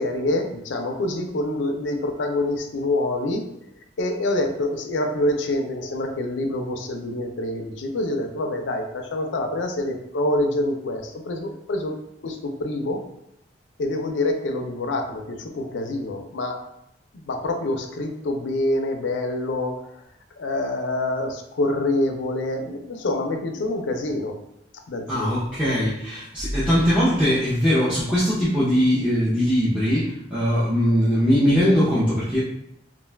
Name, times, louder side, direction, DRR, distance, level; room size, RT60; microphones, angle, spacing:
voice 1, 0.0-3.5 4.0-11.9 12.2-13.0 13.8-16.6 17.1-19.8 20.4-24.4 24.9-25.3, left 1 dB, 80° left, 5 dB, 0.4 m, -26 dB
voice 2, 25.1-32.4, equal, 5° right, -10 dB, 0.5 m, -21 dB
2.5 x 2.2 x 3.2 m, 0.79 s
head